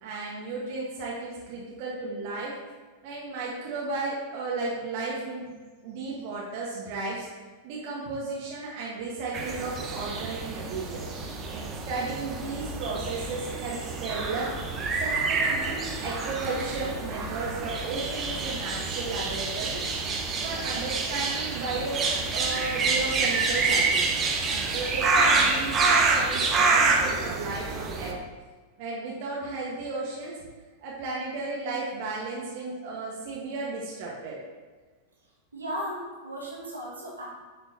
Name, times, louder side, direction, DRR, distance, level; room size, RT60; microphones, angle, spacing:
voice 1, 0.0-2.5 3.0-5.5 5.8-7.3 7.6-11.0 11.5-14.5 15.0-19.8 20.4-24.1 24.4-28.2 28.8-30.4 30.8-34.4, right 3 dB, 45° right, -4 dB, 1.4 m, -34 dB
sound 1, 9.3-28.1, right 4 dB, 25° right, 1.0 m, -27 dB
voice 2, 35.5-37.3, equal, 80° right, -6 dB, 2.3 m, -35 dB
9.4 x 5.4 x 2.9 m, 1.4 s
figure-of-eight pair, 90°, 0 cm